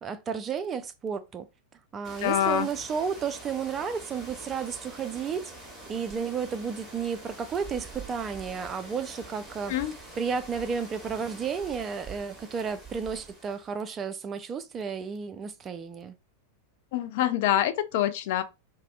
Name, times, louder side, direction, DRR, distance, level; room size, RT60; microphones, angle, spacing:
voice 1, 0.0-1.5 1.9-5.5 5.9-9.7 10.2-16.2, right 6 dB, 25° right, 0.3 m, -32 dB
river-canyon-winter-heavy-flow-with-fadeout, 2.0-13.7, right 2 dB, 5° right, 1.2 m, -45 dB
voice 2, 2.2-2.7 9.7-9.9 16.9-18.4, left 11 dB, 50° left, 0.3 m, -25 dB
2.6 x 2.0 x 2.4 m
figure-of-eight pair, 90°, 0 cm